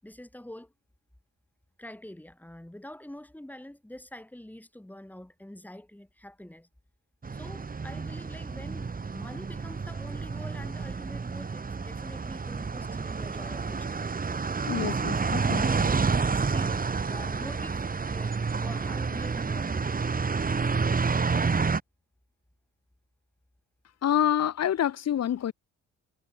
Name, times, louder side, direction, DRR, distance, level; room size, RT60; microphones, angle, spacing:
voice 1, 0.0-0.7 1.8-6.7 7.3-14.2 14.8-15.0 15.3-17.8 18.1-20.0, left 1 dB, 5° left, 5.5 m, -46 dB
sound 1, 7.2-21.8, right 4 dB, 30° right, 2.5 m, -29 dB
voice 2, 14.7-15.9 24.0-25.5, left 10 dB, 55° left, 1.6 m, -27 dB
cardioid pair, 90°, 30 cm